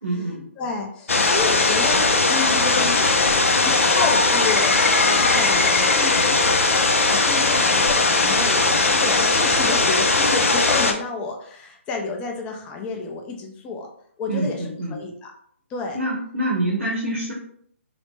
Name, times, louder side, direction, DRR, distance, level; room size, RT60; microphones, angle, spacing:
voice 1, 0.0-0.5 14.3-15.0 15.9-17.3, right 1 dB, 75° right, -4 dB, 1.0 m, -26 dB
voice 2, 0.6-3.0 3.7-6.7 7.1-13.9 14.2-14.6 14.9-15.3 15.7-16.0, left 4 dB, 15° left, 2 dB, 0.4 m, -30 dB
sound 1, 1.1-10.9, left 3 dB, 80° left, 0.5 m, -19 dB
3.1 x 2.1 x 3.0 m, 0.64 s
figure-of-eight pair, 145°, 7 cm